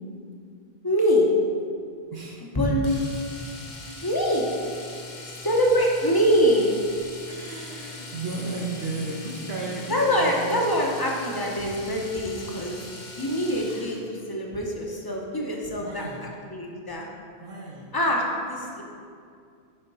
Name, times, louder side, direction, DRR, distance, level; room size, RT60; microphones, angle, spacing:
voice 1, 0.8-1.3 2.5-3.0 4.0-4.5 5.4-6.7 9.9-12.8 13.2-16.0 16.5-17.1 17.9-18.8, equal, 25° left, -1 dB, 0.9 m, -24 dB
voice 2, 2.1-2.4 7.3-10.5 15.8-16.2 17.4-17.9, right 3 dB, 70° right, -4 dB, 1.2 m, -34 dB
Domestic sounds home sounds, 2.8-14.1 16.2-16.3 16.6-16.7, left 3 dB, 50° left, 0.9 m, -41 dB
6.7 x 5.1 x 5.4 m, 2.3 s
omnidirectional pair, 1.1 m